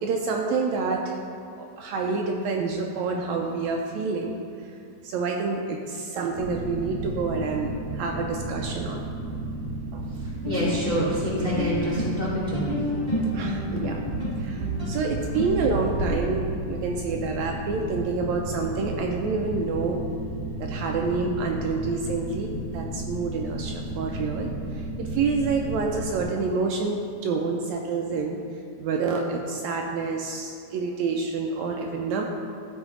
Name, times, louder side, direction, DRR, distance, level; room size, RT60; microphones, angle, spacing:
voice 1, 0.0-1.2 1.6-4.4 4.6-4.7 5.0-9.0 9.9-10.0 13.3-14.0 14.4-20.0 20.6-28.4 28.8-32.2, right 4 dB, 80° right, 1 dB, 1.7 m, -28 dB
sound 1, 6.3-26.2, right 1 dB, 50° right, 2.4 m, -34 dB
voice 2, 10.2-12.7, equal, 85° left, -7 dB, 0.7 m, -27 dB
sound 2, 10.4-16.1, left 1 dB, 15° right, 1.4 m, -30 dB
13.0 x 4.5 x 3.7 m, 2.7 s
omnidirectional pair, 3.6 m